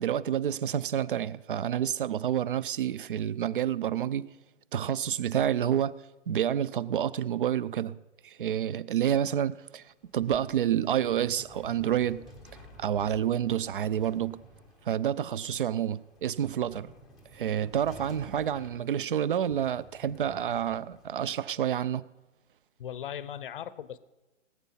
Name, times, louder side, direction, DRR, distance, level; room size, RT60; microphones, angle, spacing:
voice 1, 0.0-4.3 4.7-5.9 6.3-8.0 8.2-12.3 12.8-14.4 14.9-16.9 17.3-22.1, right 10 dB, 45° right, 0.4 m, -29 dB
sound 1, 10.0-21.8, equal, ahead, 0.6 m, -53 dB
voice 2, 22.8-24.0, left 9 dB, 45° left, 0.7 m, -38 dB
18.5 x 8.4 x 5.6 m
hypercardioid pair, 155°, 38 cm